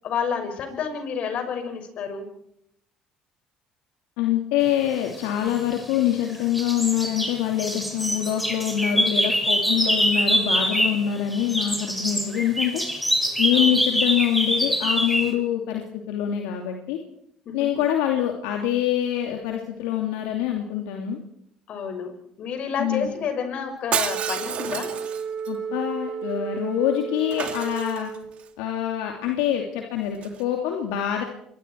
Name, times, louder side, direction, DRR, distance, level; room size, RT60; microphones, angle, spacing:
voice 1, 0.0-2.3 13.5-13.8 17.5-17.7 21.7-22.1 22.4-25.0, left 6 dB, 60° left, 6 dB, 5.9 m, -29 dB
voice 2, 4.2-12.8 13.4-17.0 17.5-21.2 22.8-23.1 25.5-28.1 28.6-31.2, left 11 dB, 85° left, 2 dB, 2.6 m, -25 dB
sound 1, 5.4-6.2 6.5-11.1 11.3-15.3, equal, ahead, 5.5 m, -24 dB
Shatter, 23.9-25.5 27.3-28.4 30.2-30.4, right 9 dB, 55° right, 2.3 m, -30 dB
Wind instrument woodwind instrument, 24.0-28.4, right 6 dB, 80° right, 6.0 m, -33 dB
27.0 x 22.5 x 4.6 m, 0.73 s
supercardioid pair, 70°, 2 cm